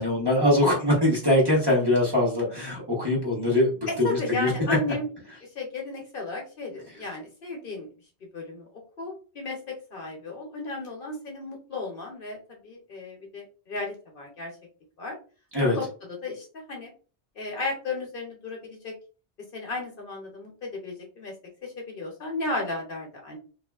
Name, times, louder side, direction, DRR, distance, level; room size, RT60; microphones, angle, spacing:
voice 1, 0.0-4.8 15.5-15.8, left 1 dB, 25° right, -5 dB, 1.0 m, -23 dB
voice 2, 3.9-5.1 5.6-7.9 8.3-8.7 9.0-12.4 12.6-14.5 15.0-15.2 15.6-16.9 17.4-19.0 19.5-21.3 21.6-23.4, left 2 dB, 60° left, 1 dB, 0.8 m, -34 dB
2.9 x 2.4 x 2.3 m, 0.36 s
omnidirectional pair, 1.1 m